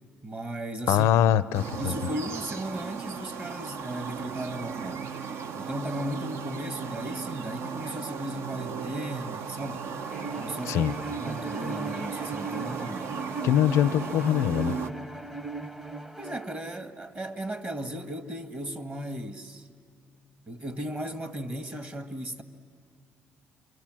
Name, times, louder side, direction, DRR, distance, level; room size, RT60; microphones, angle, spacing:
voice 1, 0.2-1.1 1.8-5.0 5.5-9.9 10.4-10.9 11.2-13.1 16.2-19.7 20.5-22.4, right 1 dB, 35° right, 1.6 m, -36 dB
voice 2, 0.9-1.9 10.7-10.9 13.4-14.8, left 11 dB, 80° left, 0.5 m, -23 dB
sound 1, 1.5-14.9, right 6 dB, 65° right, 0.8 m, -36 dB
Bowed string instrument, 10.1-16.7, right 3 dB, 10° right, 0.9 m, -38 dB
28.0 x 23.5 x 7.6 m
supercardioid pair, 75°, 5 cm